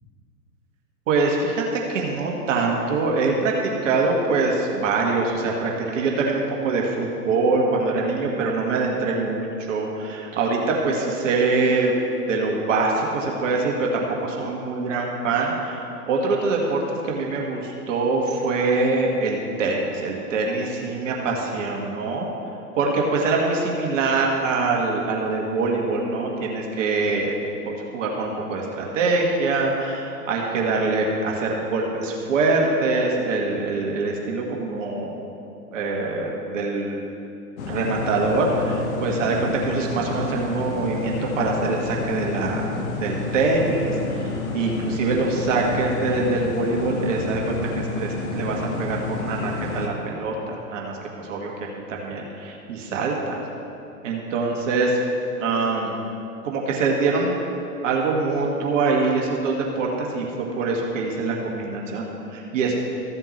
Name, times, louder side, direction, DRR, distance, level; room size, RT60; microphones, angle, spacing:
voice 1, 1.1-12.0 12.3-15.8 16.1-22.3 22.8-27.3 27.7-35.2 35.7-37.0 37.6-42.7 43.0-51.5 51.9-53.4 54.0-55.0 55.4-56.0 56.4-57.4 57.8-62.8, right 3 dB, 50° right, -1 dB, 1.8 m, -24 dB
sound 1, 37.6-49.9, left 3 dB, 60° left, 1.3 m, -29 dB
14.5 x 7.6 x 3.2 m, 2.6 s
figure-of-eight pair, 115°, 48 cm